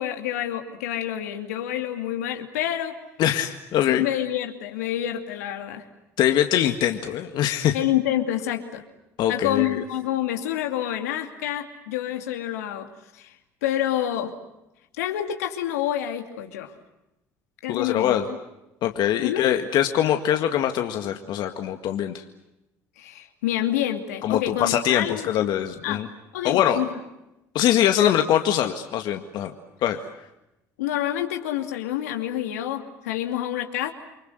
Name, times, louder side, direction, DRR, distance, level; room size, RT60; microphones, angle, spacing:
voice 1, 0.0-3.0 3.9-5.8 7.7-8.8 9.3-13.3 13.6-14.3 15.0-16.7 17.6-18.2 19.2-19.5 23.0-25.3 25.8-26.0 26.3-26.9 30.8-33.9, left 12 dB, 85° left, 5 dB, 2.7 m, -28 dB
voice 2, 3.2-4.1 6.2-7.8 9.2-9.8 17.7-18.3 18.8-22.2 24.2-26.1 26.4-26.8 27.5-29.5 29.8-30.0, left 11 dB, 65° left, 6 dB, 1.9 m, -23 dB
29.5 x 24.5 x 8.0 m, 0.92 s
hypercardioid pair, 65°, 8 cm